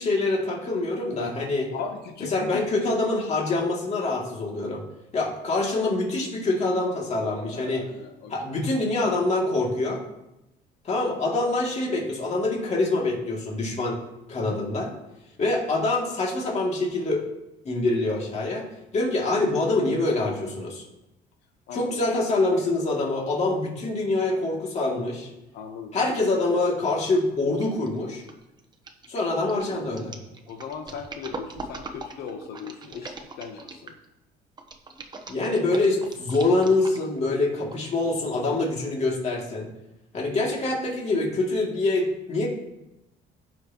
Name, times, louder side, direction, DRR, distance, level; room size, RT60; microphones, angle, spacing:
voice 1, 0.0-1.7 2.3-4.8 5.1-7.8 8.3-10.0 10.8-14.0 14.3-14.9 15.4-17.2 17.6-18.7 18.9-20.8 21.7-25.3 25.9-28.2 29.1-30.1 35.3-39.7 40.1-42.5, left 2 dB, 40° left, -2 dB, 2.6 m, -25 dB
voice 2, 1.7-2.7 7.4-8.3 21.7-21.9 25.5-26.1 30.5-33.9, left 6 dB, 70° left, 4 dB, 1.0 m, -38 dB
sound 1, 27.6-27.9 28.2-34.0 34.6-37.2 37.7-37.8, right 3 dB, 25° right, 1.1 m, -40 dB
15.5 x 5.9 x 3.0 m, 0.93 s
cardioid pair, 110°, 17 cm